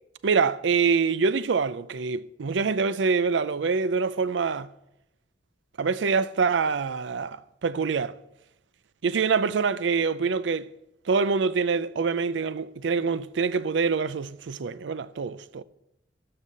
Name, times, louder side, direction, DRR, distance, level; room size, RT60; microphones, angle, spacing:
voice 1, 0.2-4.7 5.8-8.2 9.0-10.7 11.1-15.6, right 5 dB, 70° right, 0.5 m, -25 dB
13.5 x 5.6 x 6.7 m
head